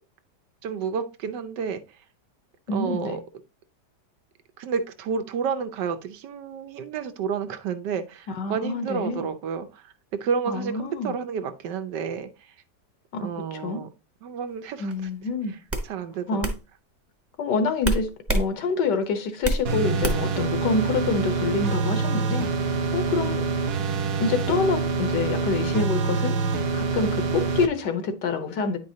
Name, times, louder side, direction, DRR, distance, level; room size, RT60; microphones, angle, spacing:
voice 1, 0.6-1.8 2.7-3.2 4.6-9.9 10.2-12.5 13.2-13.9 14.2-14.9 15.8-16.5, right 6 dB, 85° right, 1.4 m, -30 dB
voice 2, 2.7-3.2 8.3-9.2 10.5-11.2 13.1-13.8 14.8-15.6 16.3-16.5 17.4-22.5 22.9-23.5 24.2-26.4 26.7-28.8, left 4 dB, 80° left, 1.6 m, -27 dB
sound 1, 14.9-15.1 15.7-15.9 16.4-16.6 17.8-18.5 18.8-19.6 20.0-20.4, right 1 dB, 10° right, 0.6 m, -25 dB
sound 2, 19.6-27.7, right 4 dB, 60° right, 0.6 m, -26 dB
9.6 x 4.7 x 2.7 m
omnidirectional pair, 1.8 m